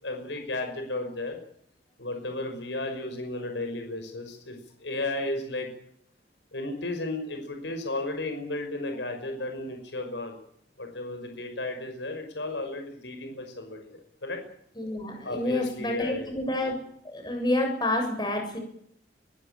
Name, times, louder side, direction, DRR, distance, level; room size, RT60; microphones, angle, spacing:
voice 1, 0.0-1.4 2.0-5.7 6.5-10.4 10.8-14.4 15.2-16.3, left 2 dB, 75° left, 5 dB, 5.7 m, -34 dB
voice 2, 14.8-16.8 17.1-18.6, left 1 dB, 25° left, 2 dB, 7.3 m, -28 dB
23.5 x 16.0 x 9.1 m, 0.68 s
head